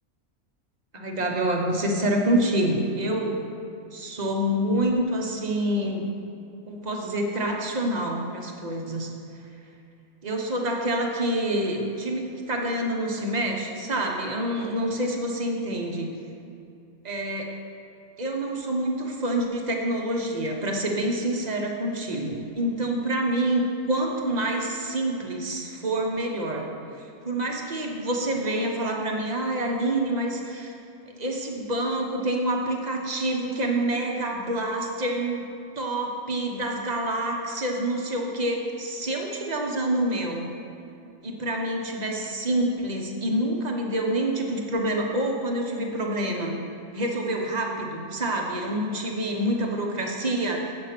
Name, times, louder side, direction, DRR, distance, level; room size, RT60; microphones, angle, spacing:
voice 1, 0.9-3.4 3.9-6.1 6.7-9.1 10.2-16.1 17.0-17.6 18.2-26.7 27.0-30.8 31.1-40.5 41.2-46.6 46.9-50.7, right 1 dB, 30° right, 1 dB, 1.0 m, -27 dB
8.4 x 7.5 x 5.9 m, 2.7 s
omnidirectional pair, 1.6 m